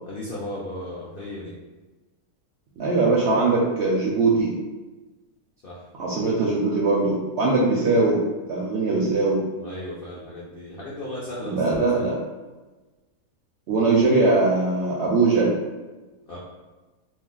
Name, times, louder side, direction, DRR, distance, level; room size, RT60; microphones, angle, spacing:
voice 1, 0.1-1.5 5.6-5.9 9.5-12.0 16.3-16.4, left 1 dB, 70° left, -6 dB, 0.5 m, -35 dB
voice 2, 2.8-4.5 6.0-8.2 8.5-9.4 11.4-12.1 13.7-15.5, right 3 dB, 70° right, -4 dB, 0.6 m, -21 dB
2.6 x 2.0 x 3.7 m, 1.2 s
omnidirectional pair, 1.6 m